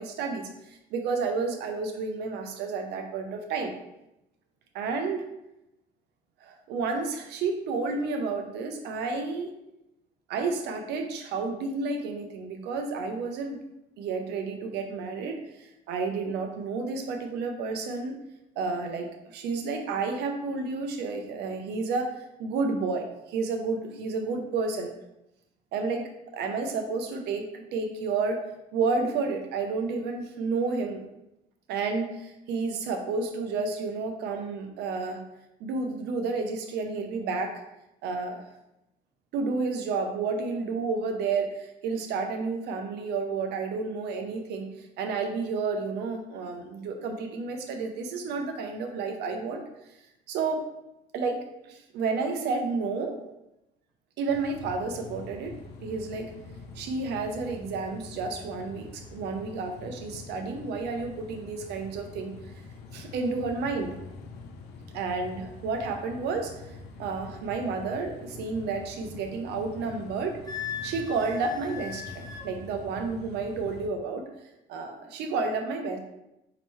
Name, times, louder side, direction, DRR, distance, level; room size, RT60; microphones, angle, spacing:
voice 1, 0.0-3.7 4.7-5.3 6.4-9.5 10.3-13.6 14.0-18.2 18.6-24.9 25.7-28.4 28.7-31.0 31.7-35.2 35.6-37.6 38.0-38.4 39.3-49.6 50.3-50.6 51.1-51.4 51.6-53.2 54.2-55.5 55.8-56.3 56.7-62.3 62.9-63.9 64.9-66.5 67.0-70.4 70.8-74.2 74.7-76.0, right 4 dB, 80° right, 4 dB, 0.6 m, -31 dB
sound 1, 54.3-73.9, left 4 dB, 75° left, 0.6 m, -45 dB
Wind instrument woodwind instrument, 70.5-72.5, left 7 dB, 25° left, 0.7 m, -38 dB
4.4 x 2.9 x 3.1 m, 0.90 s
cardioid pair, 110°, 17 cm